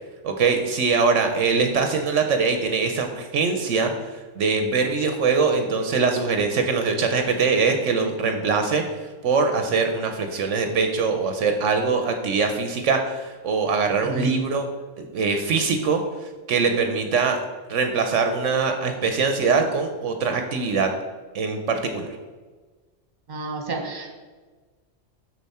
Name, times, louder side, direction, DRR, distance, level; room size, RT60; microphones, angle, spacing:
voice 1, 0.2-3.9 4.4-8.8 9.2-14.7 15.0-16.0 16.5-17.4 17.7-20.9 21.3-22.1, right 4 dB, 75° right, 5 dB, 1.0 m, -22 dB
voice 2, 14.0-14.3 23.3-24.1, right 3 dB, 40° right, 3 dB, 1.3 m, -30 dB
7.0 x 6.6 x 4.2 m, 1.4 s
omnidirectional pair, 1.3 m